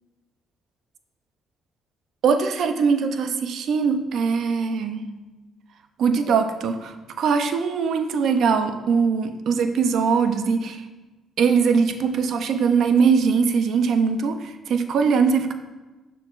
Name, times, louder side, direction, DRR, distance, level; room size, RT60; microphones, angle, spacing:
voice 1, 2.2-5.1 6.0-10.8 11.4-15.5, right 5 dB, 70° right, 8 dB, 0.5 m, -21 dB
6.5 x 6.3 x 2.4 m, 1.1 s
cardioid pair, 85°, 0 cm